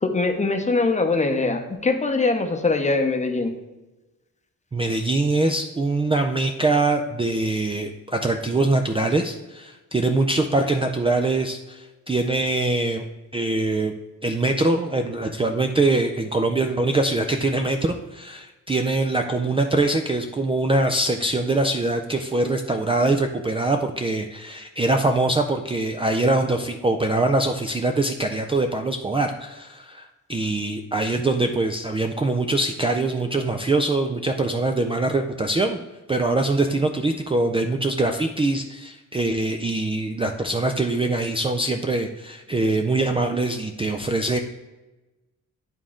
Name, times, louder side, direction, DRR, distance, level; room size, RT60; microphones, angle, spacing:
voice 1, 0.0-3.5, left 3 dB, 20° left, 5 dB, 0.7 m, -22 dB
voice 2, 4.7-13.0 13.3-13.9 14.2-35.8 36.1-44.4, right 2 dB, 15° right, 5 dB, 0.4 m, -23 dB
10.5 x 3.7 x 3.7 m, 1.1 s
wide cardioid pair, 120°, 32 cm